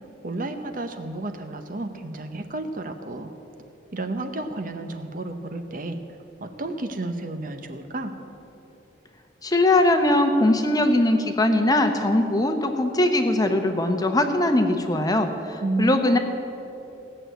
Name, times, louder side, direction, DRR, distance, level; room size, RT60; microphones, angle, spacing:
voice 1, 0.2-3.3 3.9-6.0 6.4-8.1 15.6-16.2, right 2 dB, 45° right, 7 dB, 0.8 m, -31 dB
voice 2, 9.4-16.2, left 1 dB, 20° left, 6 dB, 0.8 m, -21 dB
17.0 x 6.5 x 9.1 m, 3.0 s
head